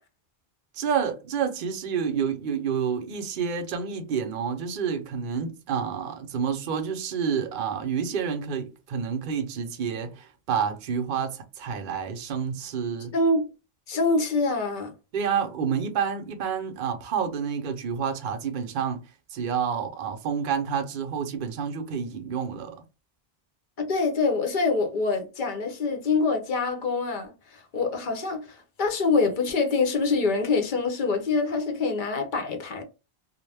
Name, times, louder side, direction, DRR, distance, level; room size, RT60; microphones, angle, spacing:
voice 1, 0.7-13.1 15.1-19.0 19.3-22.7, right 7 dB, 60° right, 0.7 m, -29 dB
voice 2, 13.1-13.5 13.9-14.9 23.8-32.8, left 3 dB, 55° left, 0.7 m, -25 dB
2.4 x 2.1 x 3.2 m
omnidirectional pair, 1.0 m